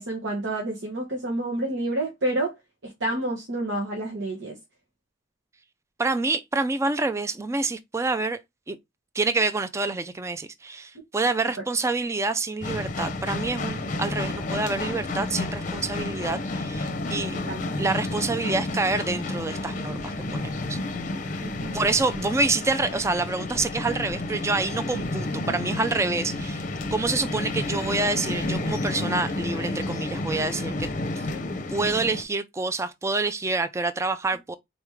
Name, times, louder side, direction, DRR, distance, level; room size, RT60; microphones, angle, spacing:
voice 1, 0.0-2.5 2.8-4.5 17.3-17.7 21.4-21.8, right 1 dB, 80° right, 1.2 m, -29 dB
voice 2, 6.0-8.4 8.7-8.8 9.1-17.4 17.8-20.8 21.7-26.6 26.9-30.9 31.7-34.6, right 3 dB, 15° right, 0.3 m, -27 dB
sound 1, 12.6-32.2, left 2 dB, 45° left, 0.6 m, -31 dB
4.0 x 3.5 x 3.1 m
head